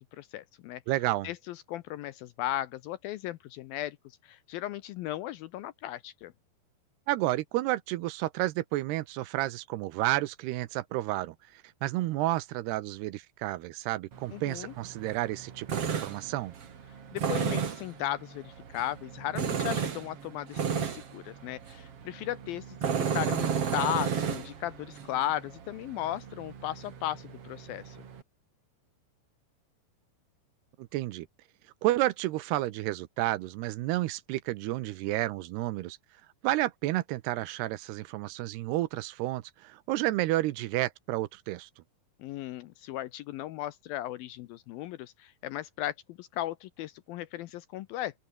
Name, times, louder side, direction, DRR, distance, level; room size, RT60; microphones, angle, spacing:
voice 1, 0.2-0.8 1.2-6.3 14.3-14.7 17.1-28.0 42.2-48.2, left 13 dB, 75° left, 2.2 m, -36 dB
voice 2, 0.9-1.3 7.1-16.5 30.8-31.3 31.8-36.0 36.4-41.7, right 16 dB, 80° right, 2.8 m, -31 dB
Tools, 14.1-28.2, right 7 dB, 40° right, 2.7 m, -34 dB
open air
omnidirectional pair, 4.9 m